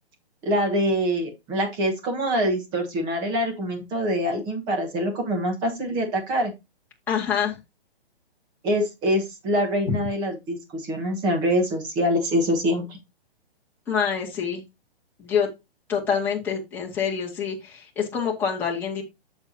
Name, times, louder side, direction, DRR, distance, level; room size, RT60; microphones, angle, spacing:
voice 1, 0.4-6.5 8.6-13.0, equal, 15° right, 4 dB, 1.4 m, -25 dB
voice 2, 7.1-7.6 13.9-14.6 15.2-15.5 15.9-19.0, left 7 dB, 5° left, -4 dB, 1.8 m, -26 dB
7.8 x 7.2 x 2.8 m, 0.22 s
hypercardioid pair, 170°, 31 cm